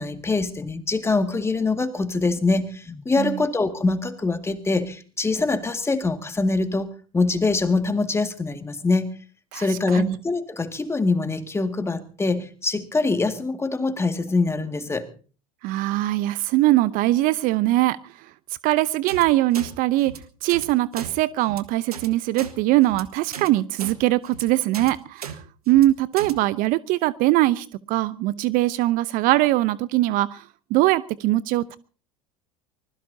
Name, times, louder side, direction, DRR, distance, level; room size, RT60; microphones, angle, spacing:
voice 1, 0.0-6.9 7.1-9.1 9.5-15.1, left 3 dB, 15° left, 7 dB, 2.1 m, -24 dB
voice 2, 9.5-10.2 15.6-18.0 18.6-20.1 20.4-25.4 25.7-30.4 30.7-31.8, right 16 dB, 50° right, 17 dB, 0.8 m, -21 dB
sound 1, 19.1-19.2 19.5-19.7 20.0-20.2 20.5-20.7 20.9-21.1 21.4-21.6 21.9-22.1 22.3-22.5 22.8-23.0 23.3-23.5 23.8-23.9 24.2-24.4 24.7-24.9 25.2-25.3 25.7-25.8 26.2-26.3, right 7 dB, 85° right, 1.9 m, -35 dB
24.5 x 20.5 x 2.8 m, 0.40 s
hypercardioid pair, 80°, 19 cm